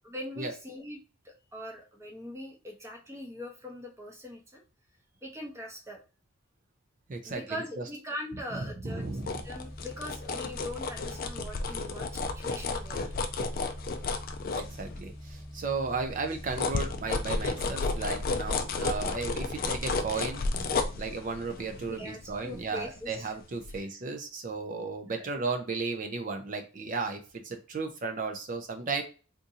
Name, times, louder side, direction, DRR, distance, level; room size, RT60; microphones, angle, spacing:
voice 1, 0.0-1.0 1.2-4.6 5.2-6.0 7.2-9.1 9.4-13.1 21.9-23.3 23.7-23.9 25.1-25.4, left 1 dB, 15° right, 0 dB, 0.7 m, -41 dB
voice 2, 7.1-7.4 8.8-9.4 14.4-20.4 21.0-29.0, right 4 dB, 35° right, 5 dB, 0.4 m, -34 dB
sound 1, 8.9-20.9, equal, 20° left, 1.1 m, -45 dB
sound 2, 9.0-15.3 15.7-23.3 23.6-23.8, left 3 dB, 40° left, 0.3 m, -33 dB
3.6 x 2.6 x 2.7 m, 0.35 s
head